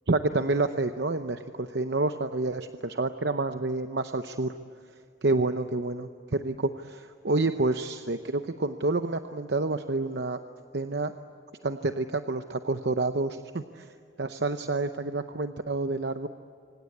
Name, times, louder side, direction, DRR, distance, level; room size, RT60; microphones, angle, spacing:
voice 1, 0.1-4.5 5.2-10.4 10.7-11.1 11.6-13.9 14.2-16.3, right 2 dB, 65° right, 8 dB, 0.8 m, -28 dB
26.0 x 25.5 x 8.6 m, 2.2 s
head